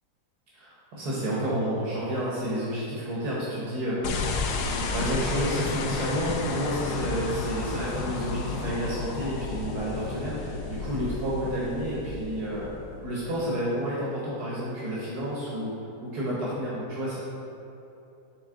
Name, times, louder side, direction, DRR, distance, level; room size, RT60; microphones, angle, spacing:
voice 1, 0.5-4.4 4.9-12.7 13.0-15.7 16.0-17.2, right 1 dB, 75° right, -7 dB, 1.7 m, -30 dB
sound 1, 4.0-13.4, left 4 dB, 80° left, 1.2 m, -32 dB
10.0 x 3.6 x 3.8 m, 2.9 s
omnidirectional pair, 1.7 m